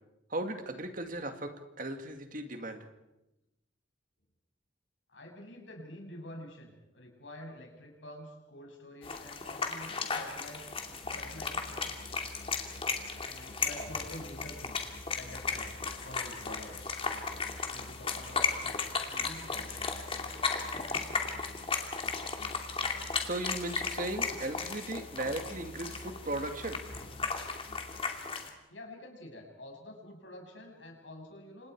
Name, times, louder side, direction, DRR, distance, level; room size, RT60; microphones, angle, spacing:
voice 1, 0.3-2.9 23.3-26.8, right 2 dB, 45° right, 6 dB, 2.2 m, -37 dB
voice 2, 5.1-11.9 13.2-14.8 15.1-16.8 17.7-20.0 28.7-31.7, left 1 dB, 90° left, 1 dB, 6.9 m, -48 dB
sound 1, 9.0-28.5, left 4 dB, 30° left, 2.6 m, -36 dB
Musical instrument, 11.0-28.0, left 1 dB, 70° left, 1.4 m, -50 dB
29.5 x 26.5 x 4.8 m, 0.94 s
head